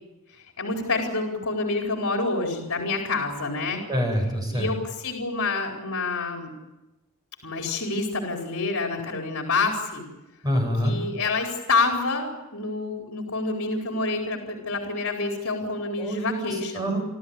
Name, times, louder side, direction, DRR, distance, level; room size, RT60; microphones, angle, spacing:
voice 1, 0.3-3.8 4.5-6.5 7.4-10.0 10.8-16.9, left 3 dB, 75° left, 1 dB, 4.3 m, -27 dB
voice 2, 3.9-4.7 10.4-11.0 16.0-17.0, equal, 20° right, 2 dB, 8.0 m, -26 dB
29.5 x 13.0 x 9.6 m, 1.0 s
head